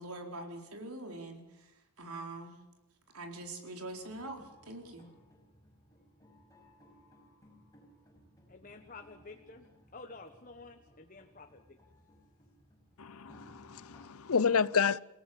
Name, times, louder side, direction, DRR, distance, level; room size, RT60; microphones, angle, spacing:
voice 1, 0.0-1.7 2.0-2.6 3.1-5.1, right 2 dB, 80° right, 4.4 m, -43 dB
sound 1, 4.0-14.1, equal, 15° left, 5.7 m, -61 dB
voice 2, 8.5-9.7 9.9-11.8, left 3 dB, 35° left, 1.4 m, -50 dB
voice 3, 13.0-15.0, left 6 dB, 80° left, 0.7 m, -29 dB
29.0 x 17.5 x 7.0 m
head